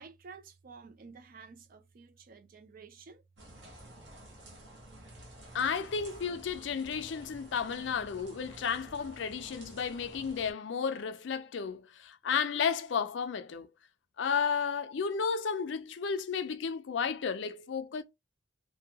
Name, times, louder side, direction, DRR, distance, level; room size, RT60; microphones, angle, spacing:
voice 1, 0.0-3.2, right 5 dB, 45° right, 0.4 m, -51 dB
sound 1, 3.4-10.5, right 1 dB, 65° right, 1.0 m, -51 dB
voice 2, 5.5-13.7 14.2-18.0, left 6 dB, 65° left, 0.4 m, -33 dB
2.6 x 2.2 x 2.7 m
head